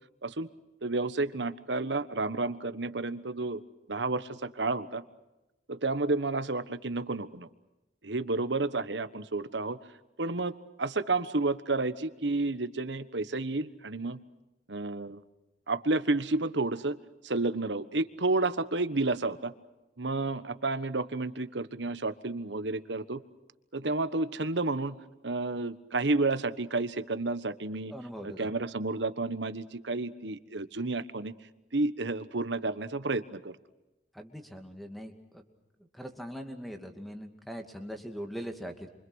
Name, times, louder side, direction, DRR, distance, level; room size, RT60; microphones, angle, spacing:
voice 1, 0.8-3.6 3.9-5.0 5.7-7.5 8.0-9.8 10.2-10.5 10.8-14.2 14.7-15.2 15.7-17.0 17.2-19.5 20.0-23.2 23.7-25.0 25.2-27.9 28.2-31.3 31.7-33.6, right 3 dB, 75° right, 12 dB, 1.3 m, -31 dB
voice 2, 27.9-28.5 34.1-35.4 35.9-38.9, equal, ahead, 5 dB, 2.4 m, -41 dB
28.0 x 25.5 x 6.4 m, 0.97 s
head